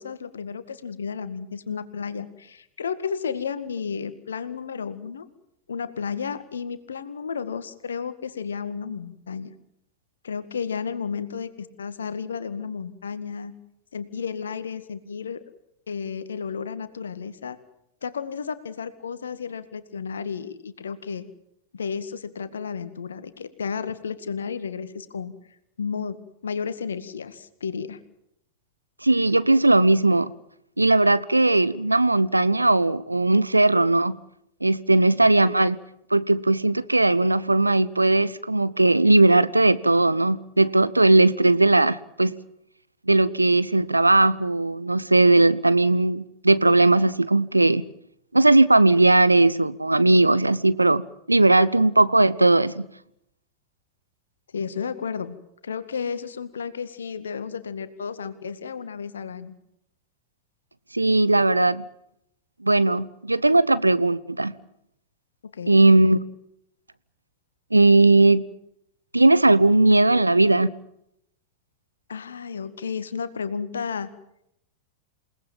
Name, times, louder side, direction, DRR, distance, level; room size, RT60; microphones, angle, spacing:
voice 1, 0.0-5.3 5.7-9.5 10.2-13.5 13.9-15.4 15.9-17.6 18.0-21.2 21.7-25.3 25.8-26.2 26.4-28.0 54.5-55.4 55.6-59.5 65.5-65.8 72.1-74.1, left 6 dB, 70° left, 2.0 m, -32 dB
voice 2, 29.0-30.3 30.8-34.2 34.6-35.8 36.1-42.3 43.1-47.8 48.3-51.0 51.3-52.9 60.9-61.8 62.6-64.5 65.7-66.2 67.7-68.4 69.1-70.7, right 2 dB, 85° right, 0.9 m, -18 dB
28.0 x 18.5 x 7.5 m
figure-of-eight pair, 90°, 0 cm